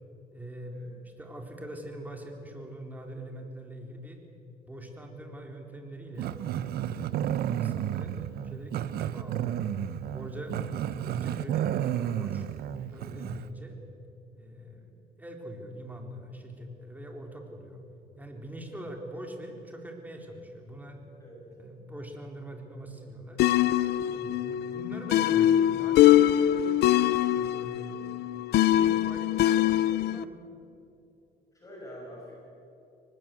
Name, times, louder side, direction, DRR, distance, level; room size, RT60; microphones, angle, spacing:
voice 1, 0.3-4.2 4.7-6.3 6.9-10.6 11.0-12.5 12.9-13.8 14.3-17.8 18.2-21.0 21.6-23.4 24.0-28.3 28.6-30.4, right 1 dB, 10° right, 2 dB, 4.0 m, -43 dB
Growling, 6.2-13.5, right 10 dB, 65° right, 0.9 m, -32 dB
sound 1, 23.4-30.2, left 12 dB, 75° left, 0.7 m, -23 dB
voice 2, 31.5-32.4, equal, 20° left, -4 dB, 6.7 m, -45 dB
24.0 x 20.0 x 7.8 m, 2.8 s
cardioid pair, 110°, 17 cm